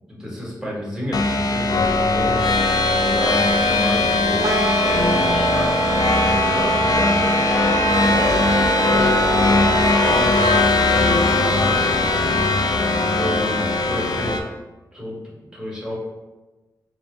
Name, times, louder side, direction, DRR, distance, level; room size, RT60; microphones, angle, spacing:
voice 1, 0.1-2.4 3.0-7.3 8.0-12.4 13.1-14.3 14.9-15.2 15.5-16.0, equal, 10° right, -6 dB, 1.4 m, -31 dB
sound 1, 1.1-14.4, left 3 dB, 55° left, 0.4 m, -19 dB
sound 2, 4.4-10.6, right 4 dB, 45° right, 0.4 m, -24 dB
4.2 x 2.0 x 3.2 m, 1.1 s
cardioid pair, 65°, 8 cm